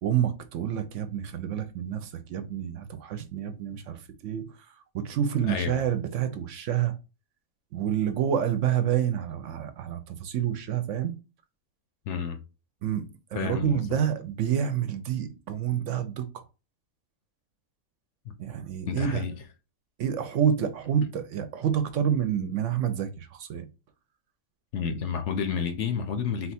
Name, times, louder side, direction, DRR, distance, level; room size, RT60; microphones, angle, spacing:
voice 1, 0.0-4.5 4.9-6.9 7.7-11.1 12.8-13.0 13.3-16.4 18.4-19.2 20.0-23.7, right 9 dB, 70° right, 0.9 m, -28 dB
voice 2, 5.4-5.8 12.1-12.4 13.3-14.0 18.9-19.3 21.0-21.1 24.7-26.5, left 6 dB, 65° left, 0.9 m, -30 dB
4.2 x 2.3 x 4.1 m
omnidirectional pair, 1.4 m